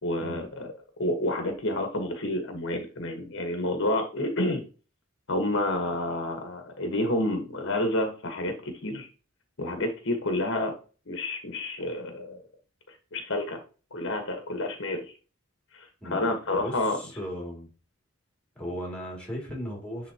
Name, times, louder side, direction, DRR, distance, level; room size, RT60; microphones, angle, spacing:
voice 1, 0.0-0.7 1.0-4.6 5.3-9.1 9.6-10.8 11.1-12.4 13.1-13.6 13.9-15.0 15.8-17.0, left 1 dB, 65° left, 1.3 m, -29 dB
voice 2, 16.5-17.7 18.5-20.1, equal, 5° left, 2.5 m, -36 dB
9.9 x 3.8 x 2.9 m
head